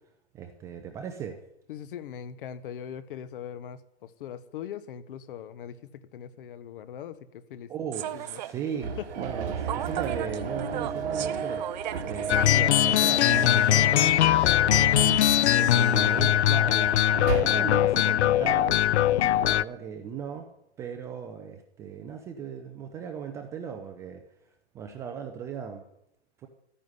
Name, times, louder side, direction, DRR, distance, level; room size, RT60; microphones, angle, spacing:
voice 1, 0.3-1.4 7.7-11.7 12.0-14.1 14.8-20.5 20.8-24.2 24.7-25.8 26.4-26.5, right 7 dB, 10° right, 5 dB, 0.5 m, -37 dB
voice 2, 1.7-7.7 8.1-8.4 9.0-9.1 9.4-9.5, left 9 dB, 50° left, 14 dB, 1.2 m, -40 dB
Human voice / Subway metro underground, 7.9-13.6, right 13 dB, 40° right, 0.8 m, -38 dB
sound 1, 8.8-17.4, right 6 dB, 60° right, 2.8 m, -33 dB
sound 2, 12.3-19.6, left 12 dB, 70° left, 0.5 m, -21 dB
13.0 x 10.0 x 9.5 m, 0.82 s
hypercardioid pair, 150°, 35 cm